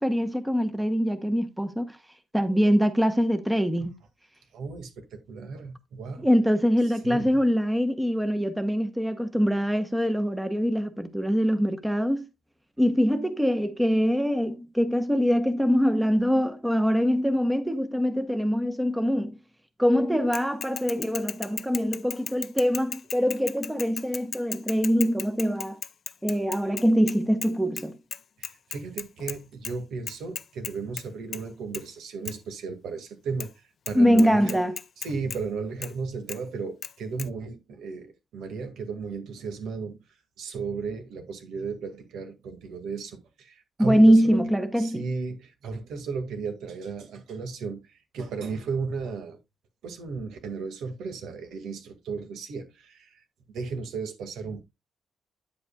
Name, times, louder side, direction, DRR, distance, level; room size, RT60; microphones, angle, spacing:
voice 1, 0.0-2.0 2.3-3.9 6.2-12.2 12.8-19.3 19.8-25.8 26.2-28.0 33.9-34.7 43.8-45.1, equal, 5° right, 0.9 m, -23 dB
voice 2, 4.5-6.3 7.0-7.4 28.4-33.5 33.9-34.6 35.0-40.0 40.4-44.4 44.8-49.4 49.8-53.1 53.5-54.6, right 4 dB, 90° right, 1.9 m, -35 dB
Bicycle / Mechanisms, 20.3-27.5 27.8-27.9 28.1-29.4 29.6-29.7 30.1-31.0 31.3-31.5 31.7-31.8 32.3-32.4 33.4-33.5 33.9-34.0 34.2-35.4 35.8-35.9 36.3-36.4 36.8-36.9 37.2-37.3, left 7 dB, 45° left, 0.4 m, -35 dB
9.5 x 7.8 x 2.3 m
cardioid pair, 145°, 0 cm